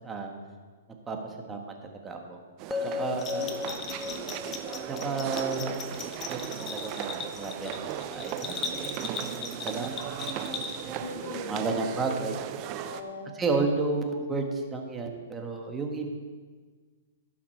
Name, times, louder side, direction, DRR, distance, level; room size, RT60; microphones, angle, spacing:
voice 1, 0.0-0.3 1.1-1.6 2.0-2.4 2.8-3.5 4.9-7.7 8.1-12.4 13.4-16.1, right 3 dB, 15° right, 2 dB, 1.4 m, -32 dB
sound 1, 2.6-13.0, right 10 dB, 35° right, 0.7 m, -37 dB
sound 2, 2.7-6.8, left 5 dB, 5° left, 0.4 m, -37 dB
Bell, 3.2-11.1, left 5 dB, 25° left, 1.0 m, -38 dB
voice 2, 3.9-4.4 11.0-11.8 12.8-13.4, left 4 dB, 80° left, 4 dB, 1.7 m, -41 dB
16.5 x 5.9 x 4.2 m, 1.5 s
hypercardioid pair, 125°, 0 cm